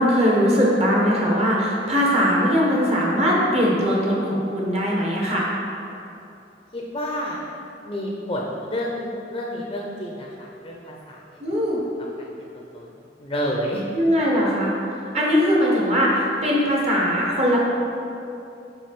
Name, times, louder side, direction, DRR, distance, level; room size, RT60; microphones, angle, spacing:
voice 1, 0.0-5.5 11.4-11.8 13.9-14.7 15.1-17.6, equal, 35° right, -4 dB, 1.4 m, -20 dB
voice 2, 6.7-7.4 7.8-11.4 12.2-12.3 12.5-12.9 13.2-13.8, equal, 25° left, -2 dB, 0.6 m, -30 dB
5.3 x 4.9 x 5.8 m, 2.7 s
head